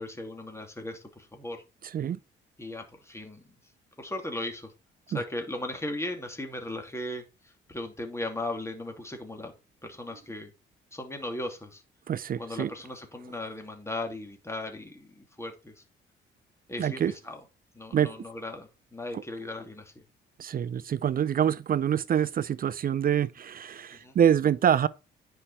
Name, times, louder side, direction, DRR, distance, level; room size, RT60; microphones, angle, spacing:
voice 1, 0.0-1.6 2.6-3.5 4.0-4.7 5.1-9.5 9.8-10.5 10.9-11.8 12.4-15.8 16.7-17.4 17.7-20.0 24.0-24.1, left 1 dB, 15° left, 2.7 m, -37 dB
voice 2, 1.8-2.2 5.1-5.2 12.1-12.7 16.8-17.1 17.9-18.1 19.1-19.2 20.4-24.9, right 9 dB, 45° right, 0.6 m, -26 dB
9.9 x 5.6 x 4.3 m
cardioid pair, 90°, 20 cm